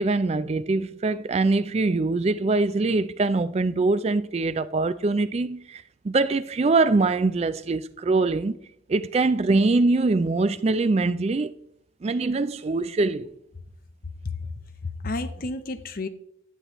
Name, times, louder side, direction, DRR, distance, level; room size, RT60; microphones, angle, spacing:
voice 1, 0.0-8.6 8.9-11.5 12.0-13.3, right 3 dB, 30° right, 0.3 m, -23 dB
voice 2, 14.8-16.1, left 3 dB, 45° left, 0.7 m, -31 dB
11.0 x 7.2 x 3.0 m
head